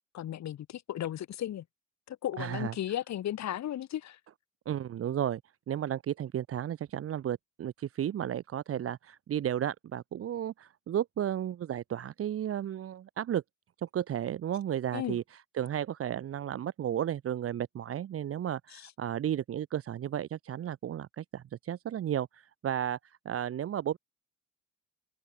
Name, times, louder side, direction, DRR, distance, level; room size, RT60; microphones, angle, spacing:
voice 1, 0.1-1.6 2.1-4.2 14.9-15.2 18.7-18.9, left 11 dB, 65° left, 1.4 m, -35 dB
voice 2, 2.4-2.7 4.7-5.4 5.7-13.4 13.8-15.2 15.5-24.0, right 10 dB, 50° right, 0.7 m, -33 dB
open air
cardioid pair, 90°, 30 cm